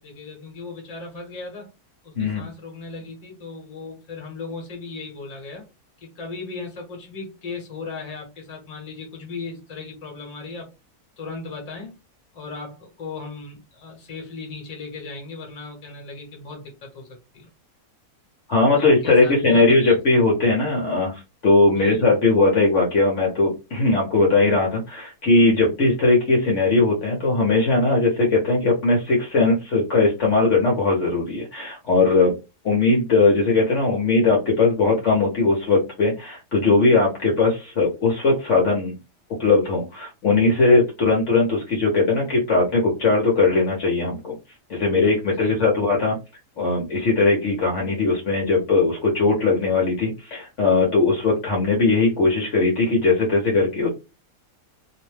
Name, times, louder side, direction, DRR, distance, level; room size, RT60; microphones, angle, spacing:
voice 1, 0.0-1.7 2.0-5.6 6.0-10.7 11.2-11.9 12.3-17.5 18.7-20.0 21.8-22.0 45.4-45.7, left 3 dB, 30° left, 1 dB, 0.9 m, -37 dB
voice 2, 18.5-32.3 32.6-39.0 39.4-44.4 44.7-46.2 46.6-53.9, left 3 dB, 60° left, -2 dB, 1.0 m, -19 dB
2.7 x 2.1 x 3.1 m, 0.28 s
omnidirectional pair, 1.6 m